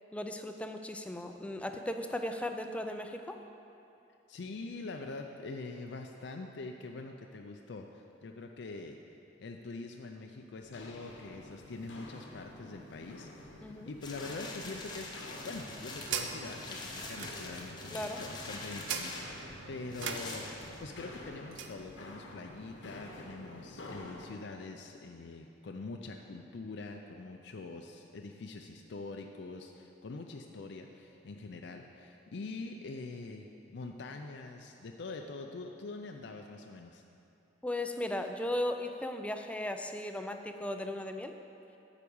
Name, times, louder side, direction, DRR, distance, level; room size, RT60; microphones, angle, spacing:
voice 1, 0.1-3.4 13.6-13.9 17.9-18.2 37.6-41.3, left 1 dB, 5° left, 6 dB, 0.4 m, -36 dB
voice 2, 4.3-9.0 9.4-37.0, left 3 dB, 65° left, 3 dB, 0.5 m, -44 dB
Walk footsteps, 10.5-24.4, left 1 dB, 85° left, 1.0 m, -49 dB
sound 1, 14.0-21.2 21.7-21.8, left 3 dB, 25° left, 0.9 m, -45 dB
sound 2, 15.2-21.8, right 6 dB, 85° right, 0.6 m, -43 dB
9.2 x 4.9 x 7.0 m, 2.7 s
head